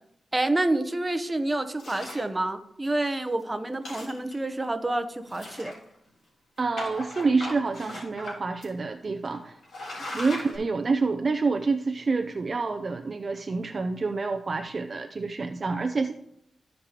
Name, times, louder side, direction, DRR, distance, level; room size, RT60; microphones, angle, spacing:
voice 1, 0.3-5.7, right 2 dB, 20° right, 8 dB, 0.8 m, -28 dB
sound 1, 1.8-2.3 2.9-3.0 3.3-3.4 3.7-4.6 5.3-6.1 6.8-8.3 8.6-8.7 9.2-9.4 9.6-10.6, left 1 dB, 70° left, 3.4 m, -38 dB
voice 2, 6.6-9.6 10.1-16.1, right 4 dB, 40° right, 6 dB, 0.5 m, -27 dB
14.0 x 5.2 x 3.0 m, 0.72 s
wide cardioid pair, 105°, 0 cm